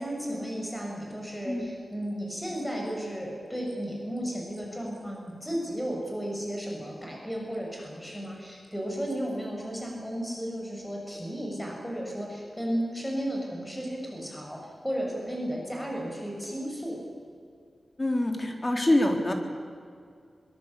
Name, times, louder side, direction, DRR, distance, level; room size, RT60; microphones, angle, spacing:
voice 1, 0.0-17.0, equal, 5° left, -1 dB, 6.7 m, -34 dB
voice 2, 18.0-19.3, left 1 dB, 25° left, 3 dB, 3.6 m, -25 dB
22.5 x 22.5 x 8.4 m, 2.3 s
wide cardioid pair, 95°, 0 cm